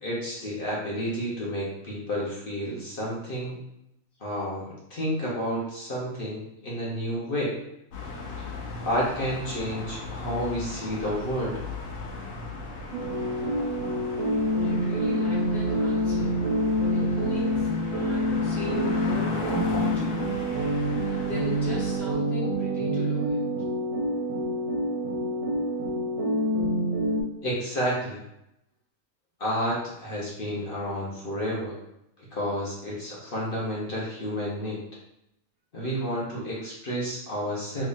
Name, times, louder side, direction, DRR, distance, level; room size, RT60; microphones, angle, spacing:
voice 1, 0.0-3.6 4.2-7.5 8.4-8.5 8.8-11.6 27.4-28.2 29.4-31.7 32.3-34.8 35.7-37.9, equal, 45° left, -6 dB, 1.1 m, -30 dB
sound 1, 7.9-22.0, left 3 dB, 80° left, 1.1 m, -38 dB
sound 2, 12.9-27.2, equal, 80° right, 1.2 m, -27 dB
voice 2, 14.6-16.4 16.9-20.2 21.2-23.4, equal, ahead, -7 dB, 0.7 m, -36 dB
3.5 x 3.2 x 2.6 m, 0.81 s
omnidirectional pair, 1.4 m